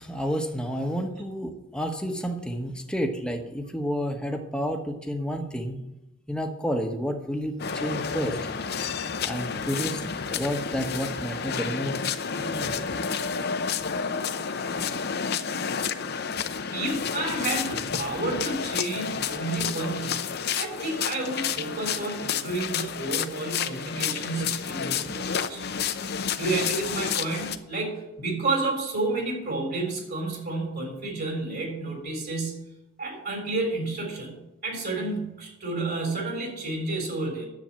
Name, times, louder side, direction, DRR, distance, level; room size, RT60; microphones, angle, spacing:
voice 1, 0.0-5.8 6.3-8.4 9.2-10.0 10.3-12.0 12.3-12.7, equal, 5° left, 4 dB, 1.1 m, -30 dB
sound 1, 7.6-27.6, left 6 dB, 50° left, 0.7 m, -30 dB
voice 2, 16.7-25.6 26.4-32.6 33.0-37.5, right 2 dB, 50° right, 2 dB, 3.9 m, -30 dB
10.5 x 7.8 x 7.5 m, 0.95 s
head